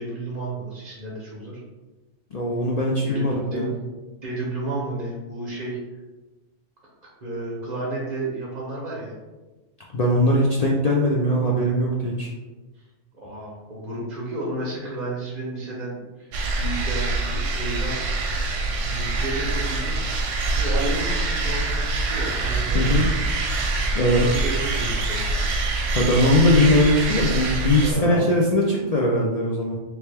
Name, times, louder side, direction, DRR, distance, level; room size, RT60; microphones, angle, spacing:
voice 1, 0.0-1.6 3.0-3.7 4.2-5.8 7.2-9.1 13.1-18.0 18.3-20.0 20.5-23.2 24.0-25.3 27.8-28.3, right 2 dB, 40° right, -5 dB, 0.9 m, -32 dB
voice 2, 2.3-3.7 9.9-12.3 22.7-23.1 23.9-24.3 25.9-29.7, left 1 dB, 75° left, -2 dB, 0.3 m, -20 dB
sound 1, 16.3-27.9, right 2 dB, 90° right, 1.0 m, -25 dB
3.2 x 3.0 x 3.3 m, 1.2 s
omnidirectional pair, 1.2 m